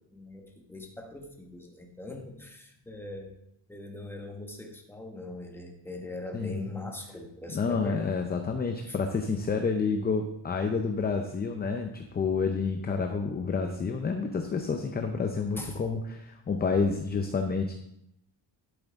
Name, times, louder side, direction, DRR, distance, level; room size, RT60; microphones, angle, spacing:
voice 1, 0.1-3.3 3.7-8.1 8.9-9.0 15.6-15.8, left 2 dB, 5° left, 2 dB, 1.4 m, -41 dB
voice 2, 7.5-17.7, left 4 dB, 20° left, 5 dB, 0.6 m, -29 dB
11.5 x 8.1 x 3.6 m, 0.79 s
cardioid pair, 145°, 45 cm